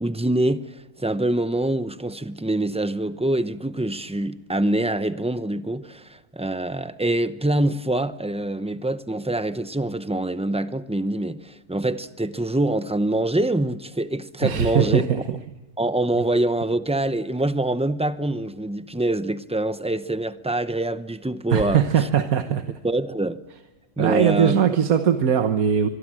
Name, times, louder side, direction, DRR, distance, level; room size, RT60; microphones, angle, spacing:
voice 1, 0.0-15.0 15.8-21.8 22.8-23.4 24.0-24.6, right 1 dB, 10° right, 0.3 m, -25 dB
voice 2, 14.4-15.2 21.5-22.8 24.0-25.9, right 8 dB, 70° right, 1.5 m, -20 dB
25.0 x 23.0 x 7.6 m
omnidirectional pair, 1.6 m